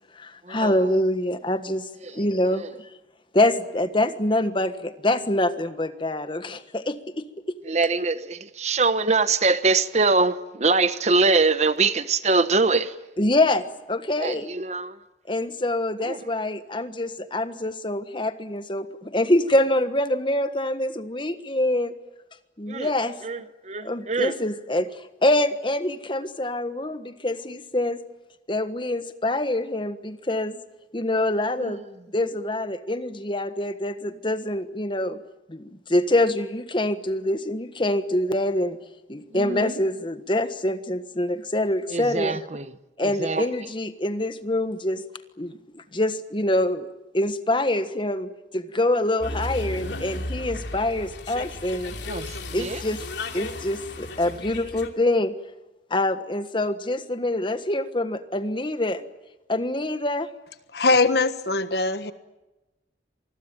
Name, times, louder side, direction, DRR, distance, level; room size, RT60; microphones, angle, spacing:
voice 1, 0.1-2.9 3.3-7.6 13.2-14.5 15.3-21.9 22.6-23.2 23.8-28.0 28.5-30.6 30.9-31.8 32.1-35.2 35.5-38.8 39.1-42.4 43.0-45.0 45.4-46.9 47.1-52.0 52.5-53.0 53.3-55.3 55.9-59.0 59.5-60.3, left 1 dB, 30° left, 1.4 m, -25 dB
voice 2, 7.7-12.9 14.2-15.0 16.0-16.2 22.7-22.9 23.2-24.3 31.6-31.8 39.3-39.7 41.9-42.6 43.0-43.5 52.1-52.3 52.6-52.8, right 3 dB, 40° right, 1.0 m, -23 dB
sound 1, 49.2-54.9, left 2 dB, 80° left, 2.8 m, -34 dB
voice 3, 60.7-62.1, left 3 dB, 65° left, 1.5 m, -21 dB
26.0 x 21.0 x 8.9 m
head